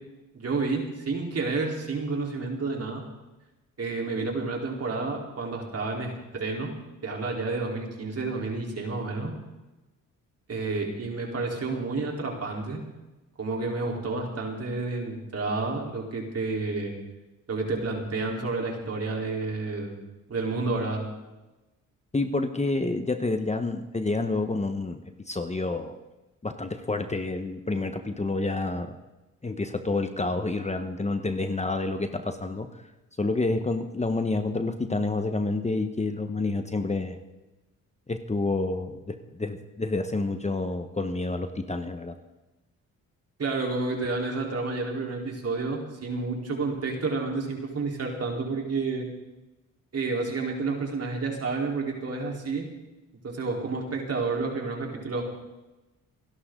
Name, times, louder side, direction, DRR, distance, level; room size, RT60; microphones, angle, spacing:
voice 1, 0.3-3.0 3.8-6.7 7.0-9.3 10.5-12.8 13.4-16.9 17.5-19.9 20.3-21.1 43.4-49.0 49.9-52.6 53.2-55.2, right 3 dB, 50° right, 0 dB, 4.2 m, -30 dB
voice 2, 22.1-26.0 26.4-28.9 29.4-32.8 33.2-37.2 38.1-42.1, left 3 dB, 20° left, 7 dB, 1.3 m, -29 dB
28.5 x 11.0 x 4.0 m, 1.1 s
cardioid pair, 80°, 32 cm